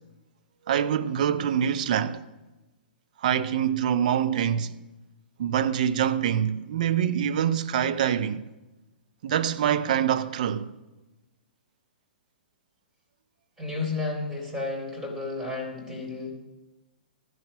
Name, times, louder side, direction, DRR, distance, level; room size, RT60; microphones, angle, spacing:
voice 1, 0.7-2.2 3.2-4.7 5.4-8.4 9.2-10.7, right 9 dB, 50° right, 0.7 m, -25 dB
voice 2, 13.6-16.3, left 3 dB, 10° right, 3.8 m, -32 dB
14.0 x 10.0 x 6.3 m
figure-of-eight pair, 115°, 5 cm